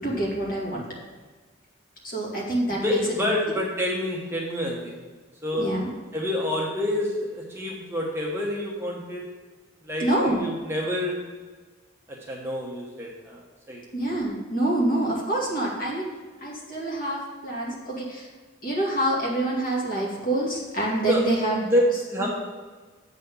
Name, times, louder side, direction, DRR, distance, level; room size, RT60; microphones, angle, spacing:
voice 1, 0.0-0.8 2.0-3.0 5.6-5.9 10.0-10.4 13.9-16.1 16.4-18.3 18.6-21.6, right 1 dB, 45° left, -4 dB, 2.2 m, -26 dB
voice 2, 2.7-5.0 5.4-5.7 6.1-9.2 9.8-11.2 12.1-13.4 13.7-13.8 21.1-21.2 21.6-22.3, left 1 dB, 10° right, -3 dB, 1.0 m, -27 dB
7.9 x 4.2 x 6.8 m, 1.4 s
head